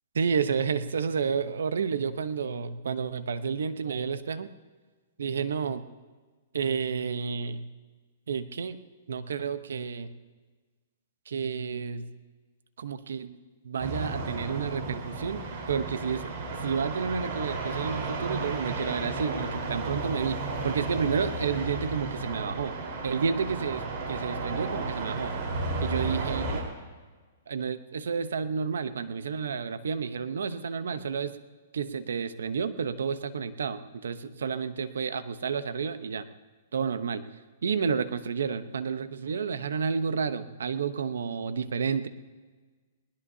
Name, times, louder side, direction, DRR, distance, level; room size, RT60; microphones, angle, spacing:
voice 1, 0.1-4.5 5.2-5.8 6.5-7.7 8.3-8.8 9.1-10.1 11.3-12.1 12.8-13.4 13.6-16.3 16.6-22.8 23.0-25.3 25.8-26.6 27.5-31.4 31.7-36.3 36.7-37.2 37.6-42.1, right 6 dB, 85° right, 12 dB, 0.9 m, -30 dB
sound 1, 13.8-26.6, right 3 dB, 50° right, 4.3 m, -33 dB
20.0 x 20.0 x 2.8 m, 1.4 s
hypercardioid pair, 140°, 0 cm